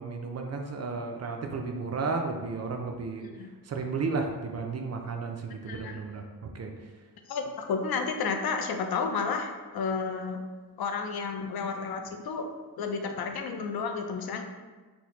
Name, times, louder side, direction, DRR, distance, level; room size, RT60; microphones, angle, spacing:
voice 1, 0.0-3.3 3.7-6.7, right 4 dB, 40° right, 3 dB, 0.4 m, -33 dB
voice 2, 3.2-3.5 5.5-6.0 7.3-10.4 10.8-12.5 12.8-14.4, left 5 dB, 65° left, 4 dB, 0.5 m, -32 dB
4.1 x 2.1 x 2.9 m, 1.3 s
cardioid pair, 85°, 40 cm